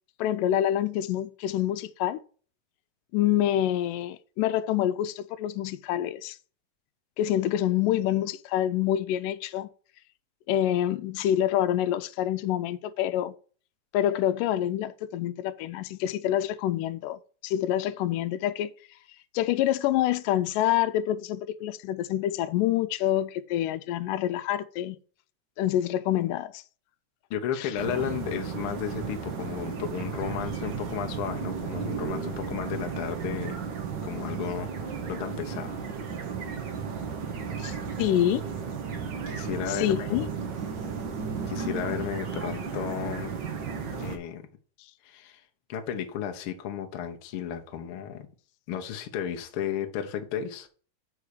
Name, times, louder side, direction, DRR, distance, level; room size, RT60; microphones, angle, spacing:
voice 1, 0.2-2.2 3.1-6.4 7.2-9.7 10.5-13.3 13.9-18.7 19.3-25.0 25.6-26.6 27.6-27.7 37.6-38.4 39.7-40.3, left 12 dB, 90° left, 2.2 m, -27 dB
voice 2, 27.3-33.6 34.0-35.8 39.3-40.3 41.5-43.3 44.0-44.4 45.0-45.4 45.7-48.3 48.7-50.7, left 9 dB, 70° left, 1.3 m, -33 dB
sound 1, 27.7-44.2, right 6 dB, 85° right, 0.9 m, -34 dB
5.6 x 4.9 x 6.5 m
omnidirectional pair, 3.7 m